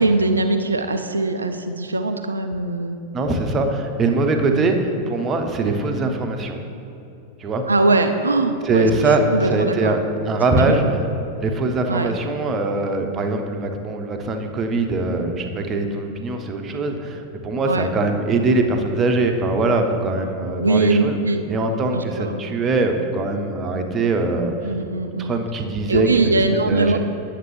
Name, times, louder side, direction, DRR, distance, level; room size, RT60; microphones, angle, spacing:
voice 1, 0.0-3.0 4.5-4.7 7.7-8.9 9.3-9.9 10.7-10.9 11.9-12.1 17.7-17.9 20.6-21.4 21.9-22.4 24.6-25.3 25.9-27.0, right 2 dB, 75° right, 8 dB, 0.4 m, -21 dB
voice 2, 3.1-6.6 7.4-7.6 8.6-10.0 10.3-11.0 11.4-21.2 21.5-24.5 25.2-27.0, right 2 dB, 25° right, 4 dB, 0.7 m, -22 dB
9.3 x 6.6 x 3.1 m, 2.7 s
figure-of-eight pair, 90°, 0 cm